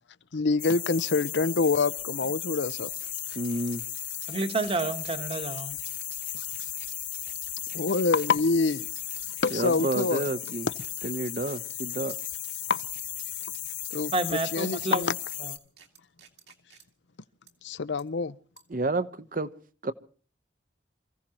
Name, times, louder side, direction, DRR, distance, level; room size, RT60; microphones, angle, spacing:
voice 1, 0.3-2.9 6.3-6.4 7.7-8.9 9.4-10.2 12.7-12.8 13.9-14.1 14.5-15.1 17.6-18.4, left 4 dB, 80° left, 0.7 m, -26 dB
sound 1, 0.6-15.6, left 12 dB, 45° left, 1.5 m, -36 dB
sound 2, 2.7-16.8 17.5-17.6 18.0-18.1 18.6-18.8, right 9 dB, 70° right, 2.4 m, -52 dB
voice 2, 3.3-3.8 9.5-10.7 11.0-12.2 18.7-19.5 19.8-19.9, right 2 dB, 45° right, 0.9 m, -30 dB
voice 3, 4.3-5.8 14.1-15.0 15.4-15.5, right 2 dB, 30° right, 1.2 m, -29 dB
28.0 x 16.0 x 3.0 m
head